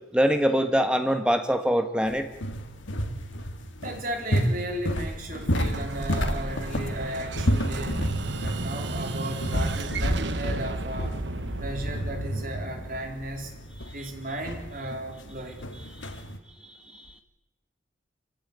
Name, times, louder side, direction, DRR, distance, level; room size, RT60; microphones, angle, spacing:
voice 1, 0.1-2.3, equal, 5° right, 7 dB, 1.6 m, -23 dB
sound 1, 2.1-16.4, equal, 90° left, 2.2 m, -31 dB
voice 2, 3.8-8.1 8.4-11.1 11.6-13.5 13.9-15.6, right 1 dB, 45° right, 3 dB, 4.3 m, -35 dB
Explosion, 5.4-14.1, right 2 dB, 70° right, 1.3 m, -34 dB
25.5 x 16.0 x 9.7 m, 0.95 s
head